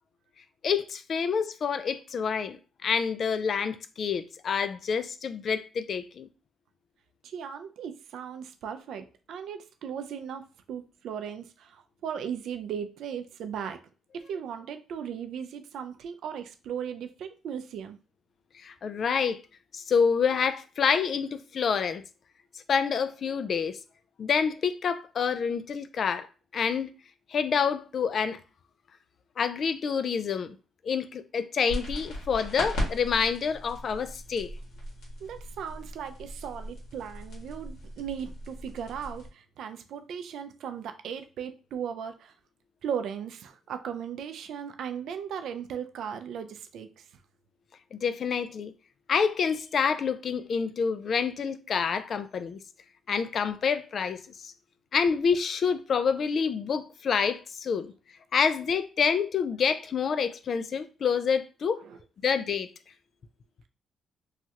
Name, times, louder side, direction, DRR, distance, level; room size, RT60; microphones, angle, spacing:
voice 1, 0.6-6.3 18.6-19.4 19.7-22.0 22.7-23.8 24.2-26.3 26.5-26.9 27.3-28.4 29.4-30.6 30.8-34.5 47.9-48.7 49.1-52.6 53.1-54.5 54.9-57.9 58.3-61.8 62.2-62.7, left 6 dB, 55° left, 0.3 m, -27 dB
voice 2, 7.2-13.8 14.1-18.0 35.2-42.3 42.8-47.1 61.8-62.0, right 8 dB, 75° right, 0.4 m, -37 dB
sound 1, 31.7-39.3, equal, 85° left, 1.5 m, -38 dB
3.1 x 2.3 x 2.8 m
cardioid pair, 90°, 0 cm